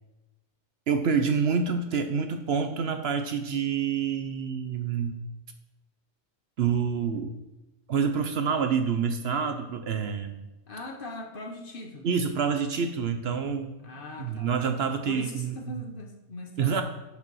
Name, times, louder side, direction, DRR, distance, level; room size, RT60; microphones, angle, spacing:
voice 1, 0.9-5.2 6.6-7.3 7.9-10.5 12.0-13.7 14.2-15.5 16.6-16.8, right 6 dB, 60° right, 7 dB, 0.8 m, -27 dB
voice 2, 10.7-12.1 13.8-14.6 15.1-16.8, left 2 dB, 45° left, 3 dB, 1.1 m, -40 dB
6.6 x 5.4 x 6.2 m, 1.0 s
omnidirectional pair, 1.3 m